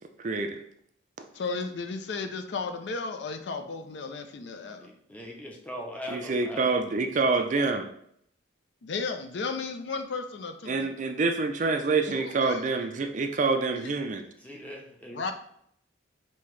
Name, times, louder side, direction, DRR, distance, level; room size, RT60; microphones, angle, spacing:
voice 1, 0.2-0.6 6.1-7.9 10.7-14.2, right 3 dB, 40° right, 6 dB, 0.4 m, -26 dB
voice 2, 1.3-4.9 8.8-10.9 12.1-12.9 13.7-13.9 15.1-15.3, left 4 dB, 60° left, 7 dB, 0.4 m, -34 dB
voice 3, 4.8-6.7 14.4-15.2, left 1 dB, 5° left, 0 dB, 0.7 m, -40 dB
5.4 x 2.8 x 3.2 m, 0.68 s
head